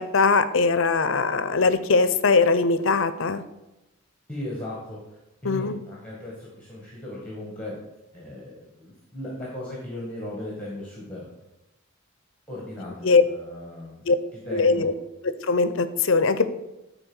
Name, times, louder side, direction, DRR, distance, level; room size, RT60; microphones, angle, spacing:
voice 1, 0.0-3.4 5.4-5.8 13.0-13.2 14.1-14.2 14.5-14.9 15.4-16.5, left 4 dB, 65° left, 13 dB, 0.6 m, -21 dB
voice 2, 4.3-7.8 8.1-11.3 12.5-14.0 14.4-14.9, left 1 dB, 5° left, -4 dB, 1.9 m, -37 dB
11.0 x 4.3 x 6.3 m, 0.98 s
head